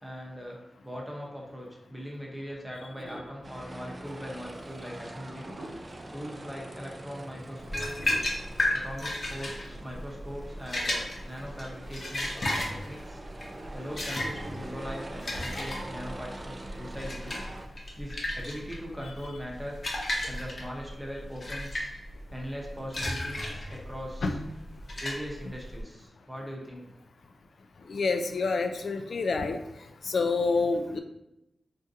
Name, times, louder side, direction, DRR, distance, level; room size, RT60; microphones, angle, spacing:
voice 1, 0.0-5.5 6.1-8.1 8.7-12.3 12.7-13.2 13.7-17.4 18.0-19.8 20.3-21.9 22.3-24.4 25.0-26.9, equal, 5° right, -2 dB, 0.7 m, -40 dB
sound 1, 3.0-4.3 5.0-5.1 5.4-6.1 6.8-6.9 8.0-8.3, right 1 dB, 70° right, 0.9 m, -44 dB
sound 2, 3.4-17.7, right 1 dB, 30° right, 0.3 m, -44 dB
sound 3, 7.6-25.8, left 1 dB, 50° left, 0.7 m, -34 dB
voice 2, 27.9-29.6 30.0-31.0, left 4 dB, 70° left, 7 dB, 0.3 m, -27 dB
3.7 x 2.5 x 2.6 m, 0.86 s
wide cardioid pair, 90°, 0 cm